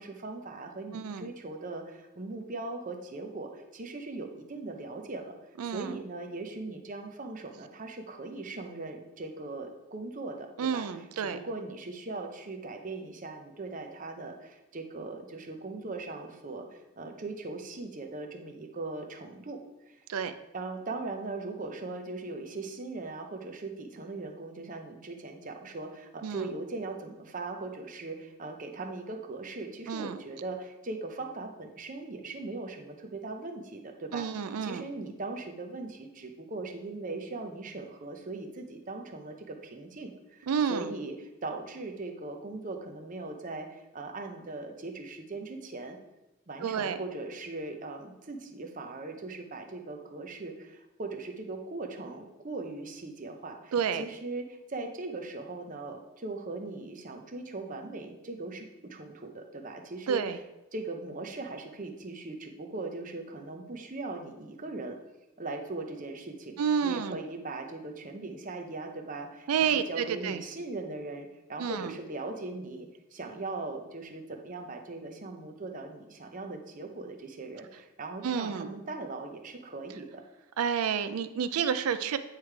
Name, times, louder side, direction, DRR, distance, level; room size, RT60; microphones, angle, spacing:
voice 1, 0.0-5.4 5.6-10.8 11.2-19.6 19.9-20.0 20.5-34.3 34.6-46.0 46.5-60.2 60.7-65.0 65.4-66.5 66.8-80.2, right 3 dB, 35° right, 4 dB, 0.7 m, -39 dB
voice 2, 0.9-1.3 5.6-6.0 10.6-11.4 20.1-20.3 26.2-26.4 29.9-30.2 34.1-34.9 40.5-40.9 46.6-47.0 53.7-54.0 60.1-60.4 66.6-67.2 69.5-70.4 71.6-71.9 78.2-78.7 80.6-82.2, right 7 dB, 80° right, 11 dB, 0.4 m, -30 dB
9.2 x 3.2 x 4.6 m, 0.98 s
head